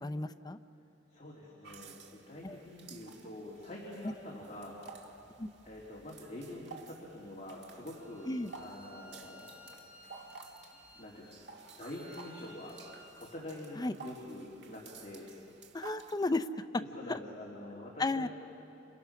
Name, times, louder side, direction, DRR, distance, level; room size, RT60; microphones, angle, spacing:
voice 1, 0.0-0.6 2.4-2.6 5.4-5.5 8.3-8.5 13.8-13.9 15.7-16.5 16.7-16.8 17.1-17.2 18.0-18.3, left 2 dB, 20° left, 10 dB, 0.6 m, -33 dB
voice 2, 1.1-5.0 5.6-9.8 10.9-11.4 11.8-12.7 13.2-15.3 16.8-18.3, left 1 dB, 35° left, -5 dB, 3.3 m, -46 dB
sound 1, 1.6-16.1, right 4 dB, 65° right, 1.8 m, -53 dB
Bowed string instrument, 7.9-13.3, left 1 dB, 10° right, 4.2 m, -57 dB
29.5 x 27.5 x 6.0 m, 2.9 s
head